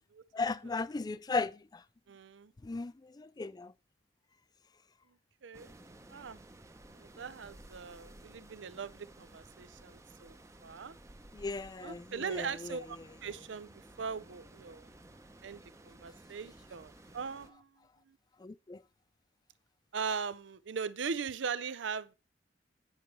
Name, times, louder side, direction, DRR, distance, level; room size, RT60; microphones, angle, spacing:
voice 1, 0.3-1.8 2.6-3.7 11.3-12.8 18.4-18.8, left 3 dB, 20° left, 0.4 m, -36 dB
voice 2, 2.1-2.5 5.4-5.8 6.1-6.4 6.9-10.9 11.8-14.9 15.4-17.7 18.1-18.2 19.9-22.1, right 5 dB, 85° right, 0.5 m, -40 dB
sound 1, 5.5-17.5, right 1 dB, 15° right, 0.7 m, -55 dB
9.8 x 4.2 x 5.4 m
head